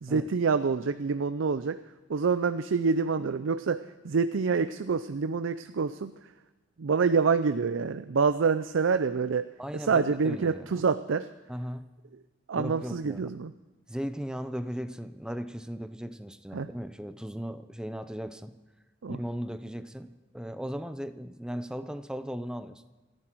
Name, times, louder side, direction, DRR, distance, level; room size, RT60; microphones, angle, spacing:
voice 1, 0.0-1.8 2.1-6.3 6.8-9.5 9.7-11.3 12.5-13.5 16.5-16.7 19.0-19.2, right 5 dB, 80° right, 12 dB, 0.5 m, -27 dB
voice 2, 9.6-10.8 11.5-11.9 12.5-13.3 13.9-18.5 19.1-22.8, equal, 5° right, 11 dB, 0.7 m, -37 dB
28.5 x 9.9 x 4.6 m, 1.2 s
head